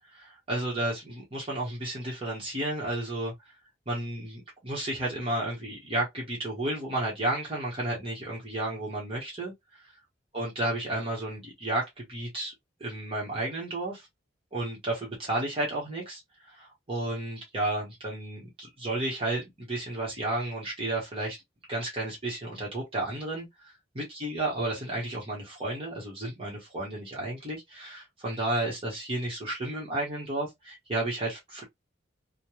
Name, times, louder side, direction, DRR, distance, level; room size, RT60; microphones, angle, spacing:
voice 1, 0.1-3.3 3.9-9.8 10.3-12.5 12.8-14.1 14.5-16.2 16.5-21.4 21.7-31.6, right 1 dB, 30° right, 1.2 m, -32 dB
3.2 x 2.2 x 2.9 m
head